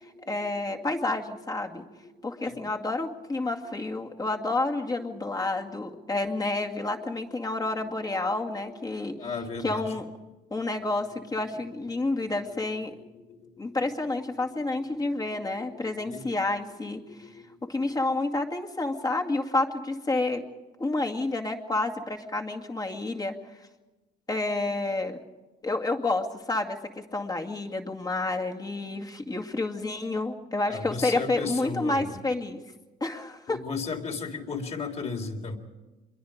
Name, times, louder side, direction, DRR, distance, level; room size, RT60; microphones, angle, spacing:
voice 1, 0.3-1.8 2.2-9.1 9.6-10.1 10.5-12.9 13.6-17.3 17.7-20.4 20.8-23.3 24.3-25.2 25.6-32.6 33.0-33.6, left 2 dB, 25° left, 3 dB, 2.3 m, -29 dB
voice 2, 2.4-2.7 9.2-10.0 13.1-13.4 13.7-13.8 16.0-16.4 17.1-17.9 30.7-32.1 33.5-35.6, left 4 dB, 40° left, 5 dB, 3.6 m, -35 dB
26.5 x 22.5 x 5.1 m, 1.1 s
cardioid pair, 110°, 17 cm